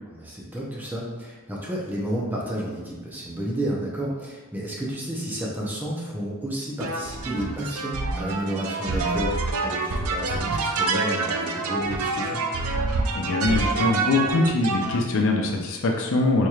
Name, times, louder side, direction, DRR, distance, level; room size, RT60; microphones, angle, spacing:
voice 1, 0.1-12.5, right 1 dB, 10° right, -4 dB, 0.6 m, -31 dB
sound 1, 6.8-15.0, right 3 dB, 70° right, 0.4 m, -26 dB
voice 2, 13.1-16.5, left 2 dB, 60° left, 1 dB, 0.5 m, -23 dB
4.2 x 3.2 x 2.3 m, 1.2 s
head